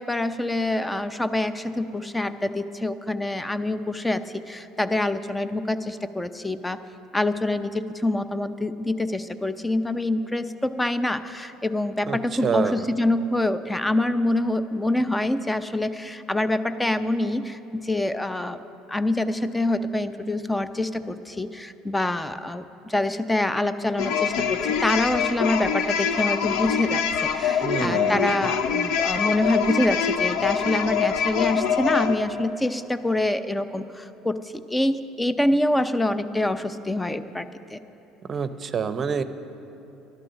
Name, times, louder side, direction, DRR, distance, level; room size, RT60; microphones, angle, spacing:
voice 1, 0.0-4.2 4.5-6.8 7.1-18.6 18.9-37.8, left 1 dB, 10° left, 12 dB, 0.6 m, -26 dB
voice 2, 12.1-12.9 27.6-28.3 38.3-39.2, right 6 dB, 40° right, 12 dB, 0.7 m, -27 dB
sound 1, 24.0-32.1, left 7 dB, 65° left, 0.6 m, -24 dB
12.5 x 11.5 x 6.4 m, 2.9 s
hypercardioid pair, 65°, 0 cm